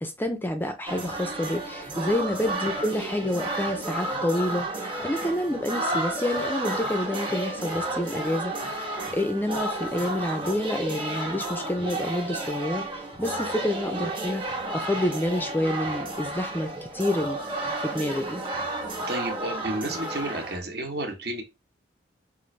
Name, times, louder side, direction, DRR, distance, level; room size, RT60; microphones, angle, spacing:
voice 1, 0.0-14.4 14.7-17.4 17.8-18.4, left 1 dB, 10° left, 6 dB, 0.4 m, -28 dB
sound 1, 0.9-20.6, right 2 dB, 25° right, 1.1 m, -32 dB
voice 2, 19.1-21.4, right 1 dB, 60° right, 4 dB, 1.1 m, -32 dB
5.3 x 2.5 x 3.2 m, 0.26 s
head